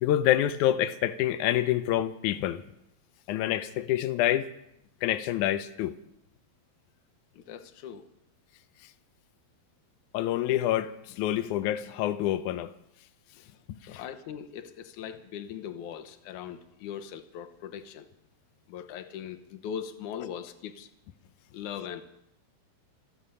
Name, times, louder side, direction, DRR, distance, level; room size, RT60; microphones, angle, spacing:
voice 1, 0.0-2.6 3.3-4.5 5.0-5.9 10.1-12.7 13.9-14.0, left 12 dB, 90° left, 1.7 m, -27 dB
voice 2, 7.3-8.1 13.9-18.1 18.7-20.9 21.5-22.0, left 9 dB, 65° left, 2.1 m, -40 dB
26.0 x 8.8 x 5.7 m
omnidirectional pair, 4.3 m